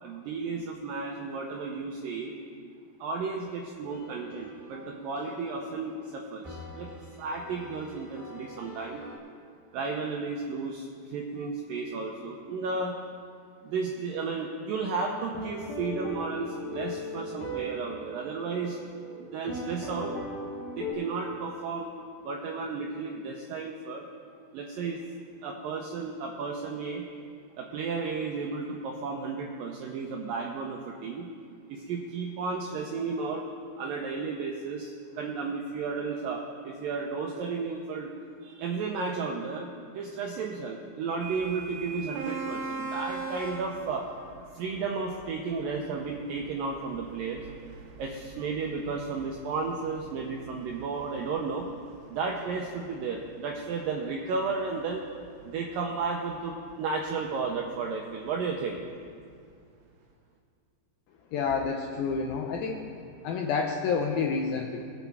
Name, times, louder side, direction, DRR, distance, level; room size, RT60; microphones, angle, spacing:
voice 1, 0.0-2.3 3.0-6.9 7.2-9.0 9.7-13.0 13.6-18.8 19.2-20.1 20.8-21.9 22.2-24.1 24.5-25.0 25.4-27.1 27.6-31.3 31.7-33.4 33.8-38.1 38.4-44.1 44.5-47.5 48.0-51.7 52.1-55.1 55.4-58.8, right 4 dB, 85° right, 0 dB, 2.0 m, -33 dB
Bunny Hop, 3.9-9.2, left 1 dB, 10° right, 3.3 m, -47 dB
sound 1, 15.3-20.9, equal, 60° left, 3.8 m, -37 dB
sound 2, 41.2-58.9, right 3 dB, 65° right, 2.2 m, -43 dB
voice 2, 61.3-62.8 63.2-64.8, left 5 dB, 80° left, 2 dB, 2.1 m, -29 dB
21.5 x 8.3 x 3.5 m, 2.2 s
omnidirectional pair, 4.9 m